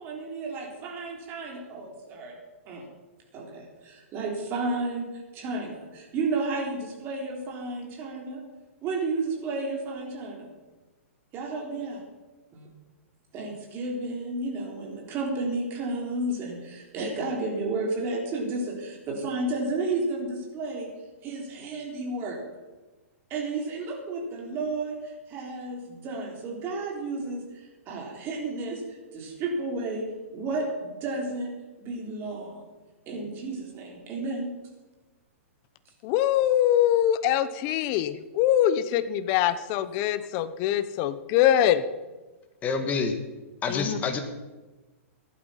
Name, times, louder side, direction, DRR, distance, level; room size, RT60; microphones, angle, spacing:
voice 1, 0.0-2.4 2.7-2.8 3.3-8.4 8.8-10.5 11.3-12.0 12.5-12.7 13.3-20.9 21.2-22.4 23.3-32.7 33.1-34.5, right 2 dB, 30° right, 0 dB, 3.6 m, -32 dB
voice 2, 36.0-41.8 43.7-44.0, left 11 dB, 35° left, 14 dB, 0.9 m, -23 dB
voice 3, 42.6-43.1 43.6-44.2, left 4 dB, 20° left, 7 dB, 1.6 m, -27 dB
14.5 x 11.5 x 5.7 m, 1.2 s
hypercardioid pair, 145°, 8 cm